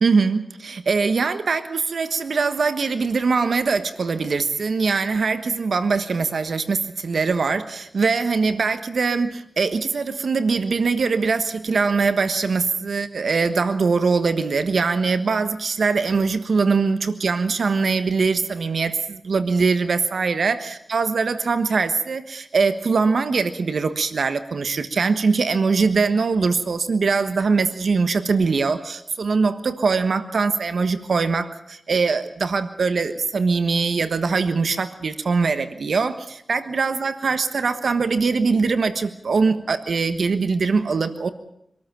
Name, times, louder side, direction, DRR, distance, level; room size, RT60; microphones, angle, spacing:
voice 1, 0.0-41.3, right 4 dB, 85° right, 11 dB, 1.3 m, -22 dB
25.5 x 13.5 x 8.9 m, 0.75 s
wide cardioid pair, 65°, 0 cm